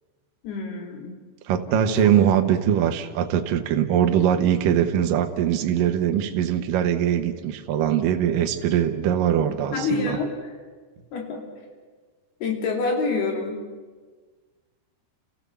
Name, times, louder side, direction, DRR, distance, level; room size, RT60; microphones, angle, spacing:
voice 1, 0.4-1.1 1.9-2.1 9.7-10.3 11.1-11.5 12.4-13.6, left 4 dB, 60° left, 2 dB, 4.6 m, -27 dB
voice 2, 1.5-10.2, right 9 dB, 70° right, 5 dB, 2.1 m, -22 dB
29.5 x 15.5 x 7.0 m, 1.4 s
omnidirectional pair, 5.5 m